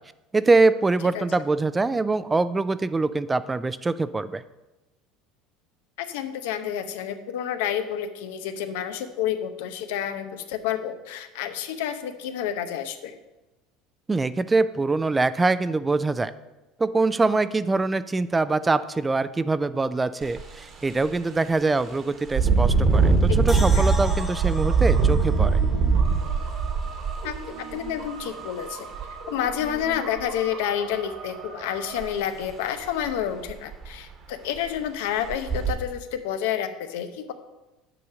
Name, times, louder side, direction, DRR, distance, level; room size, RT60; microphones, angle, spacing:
voice 1, 0.3-4.4 14.1-16.3 16.8-25.6, right 3 dB, 15° right, 15 dB, 0.3 m, -23 dB
voice 2, 6.0-13.2 23.7-23.8 27.2-28.9 29.3-37.3, left 9 dB, 85° left, 9 dB, 0.7 m, -29 dB
Engine, 20.2-20.4 20.9-21.0 22.3-28.1 28.9-29.0 29.5-30.2 32.0-32.1 32.5-32.6 33.1-33.2 33.5-34.0 34.6-34.7 35.3-35.7, right 4 dB, 35° right, 1.2 m, -22 dB
sound 1, 23.5-26.7 27.0-27.1, left 2 dB, 10° left, 1.1 m, -38 dB
sound 2, 23.9-32.1, right 4 dB, 80° right, 1.5 m, -39 dB
7.0 x 5.0 x 6.8 m, 1.0 s
supercardioid pair, 125°, 0 cm